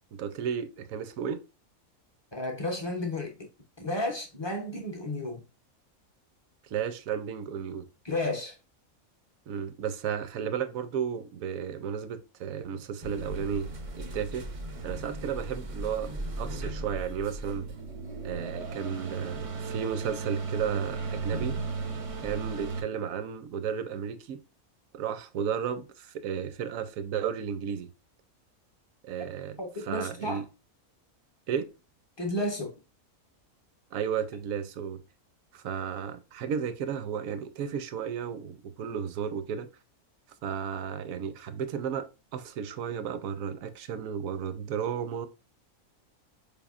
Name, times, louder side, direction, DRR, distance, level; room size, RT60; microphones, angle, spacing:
voice 1, 0.2-1.4 6.6-7.9 9.5-13.7 13.9-14.5 14.8-17.7 18.2-21.6 22.2-24.4 24.9-27.9 29.0-30.4 31.5-31.7 33.9-35.0 35.5-39.7 40.4-45.3, right 8 dB, 75° right, 1.0 m, -33 dB
voice 2, 2.3-3.4 3.8-5.4 8.0-8.6 29.6-30.4 32.2-32.7, left 1 dB, 35° left, 0.4 m, -32 dB
sound 1, 13.0-22.8, right 3 dB, 60° right, 0.3 m, -36 dB
4.5 x 3.4 x 2.4 m
omnidirectional pair, 1.5 m